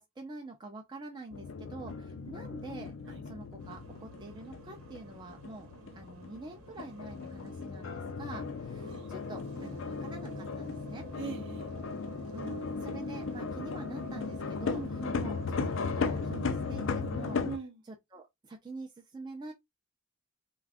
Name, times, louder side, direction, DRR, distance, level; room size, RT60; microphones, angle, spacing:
voice 1, 0.0-2.9 3.2-11.1 12.3-14.8 15.1-17.4 18.1-19.5, right 2 dB, 20° right, 0.4 m, -46 dB
sound 1, 1.3-17.6, left 4 dB, 65° left, 0.4 m, -37 dB
sound 2, 3.6-17.5, right 3 dB, 85° right, 0.9 m, -52 dB
voice 2, 5.7-6.1 8.8-9.1 9.5-9.9 11.2-11.7 14.7-15.2 17.4-17.8, right 5 dB, 55° right, 0.7 m, -43 dB
2.5 x 2.3 x 3.3 m
head